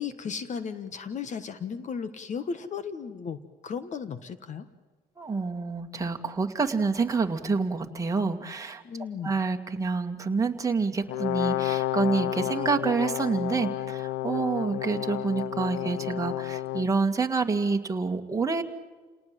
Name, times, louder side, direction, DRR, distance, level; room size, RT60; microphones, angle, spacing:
voice 1, 0.0-3.4 3.6-4.7 8.8-9.3, left 6 dB, 45° left, 13 dB, 1.4 m, -35 dB
voice 2, 5.2-8.8 9.2-18.6, right 4 dB, 20° right, 3 dB, 2.0 m, -27 dB
Brass instrument, 11.1-16.9, left 13 dB, 80° left, 0.9 m, -31 dB
28.5 x 19.0 x 7.7 m, 1.3 s
cardioid pair, 110°, 17 cm